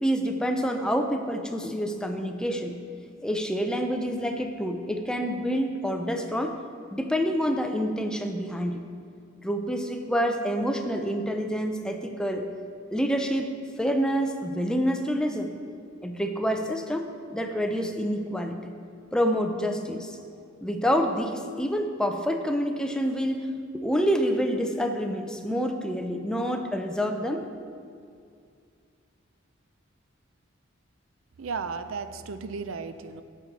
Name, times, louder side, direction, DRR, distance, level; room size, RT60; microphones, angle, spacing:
voice 1, 0.0-2.8 3.2-6.6 6.9-8.8 9.4-12.5 12.9-13.5 13.8-15.5 16.0-18.6 19.1-20.2 20.6-23.5 23.7-27.5, equal, 5° left, 4 dB, 0.5 m, -27 dB
voice 2, 31.4-33.2, right 5 dB, 85° right, 11 dB, 0.5 m, -34 dB
8.3 x 6.9 x 6.0 m, 2.3 s
head